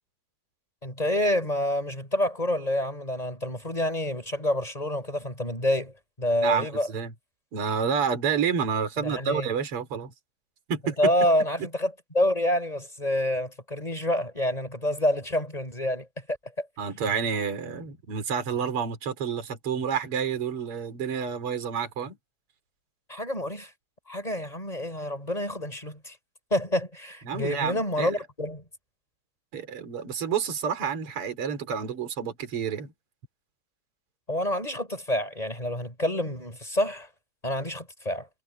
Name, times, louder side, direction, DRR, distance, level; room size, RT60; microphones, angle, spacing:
voice 1, 0.8-6.9 9.0-9.5 10.8-16.1 16.6-16.7 23.1-23.7 24.1-26.2 26.5-28.6 34.3-37.1 37.4-38.3, left 1 dB, 10° left, 7.2 m, -28 dB
voice 2, 6.4-7.1 7.5-10.1 10.7-11.1 16.8-22.2 27.3-28.2 29.5-32.9, right 6 dB, 45° right, 4.2 m, -29 dB
omnidirectional pair, 3.5 m